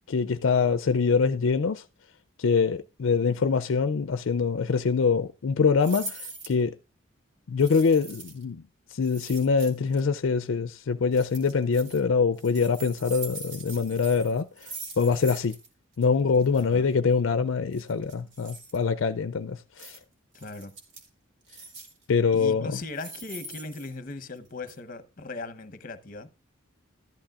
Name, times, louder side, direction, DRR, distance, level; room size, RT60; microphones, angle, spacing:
voice 1, 0.1-1.8 2.4-6.7 7.5-8.6 8.9-14.7 15.0-15.6 16.0-20.0 22.1-22.8, left 5 dB, 70° left, 0.4 m, -24 dB
sound 1, 5.8-6.6 7.6-8.4 9.0-10.0 11.1-12.0 12.4-15.7 15.9-16.0 16.3-16.6 17.7-18.8 19.8-20.0 20.3-21.1 21.5-22.0 22.7-24.4 24.7-24.8, right 2 dB, 60° right, 2.5 m, -42 dB
voice 2, 16.6-16.9 20.3-20.7 22.3-26.3, left 3 dB, 40° left, 0.9 m, -38 dB
13.5 x 11.5 x 2.4 m
head